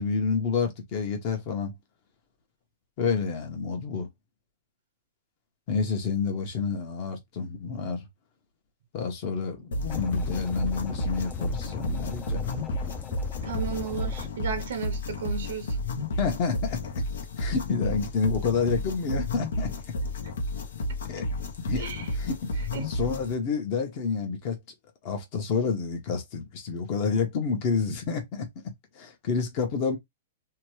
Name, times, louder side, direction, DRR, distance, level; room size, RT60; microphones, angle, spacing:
voice 1, 0.0-1.8 3.0-4.1 5.7-8.1 8.9-12.4 16.1-17.0 17.4-19.7 21.1-21.3 21.6-24.6 25.0-28.5 28.9-30.0, left 5 dB, 40° left, 1.0 m, -29 dB
sound 1, 9.7-23.3, left 1 dB, 80° left, 0.9 m, -32 dB
sound 2, 9.9-14.3, left 4 dB, 10° left, 0.3 m, -39 dB
voice 2, 13.4-15.8 21.8-22.1 22.7-22.9, right 6 dB, 75° right, 0.6 m, -34 dB
2.9 x 2.3 x 3.1 m
hypercardioid pair, 145°, 0 cm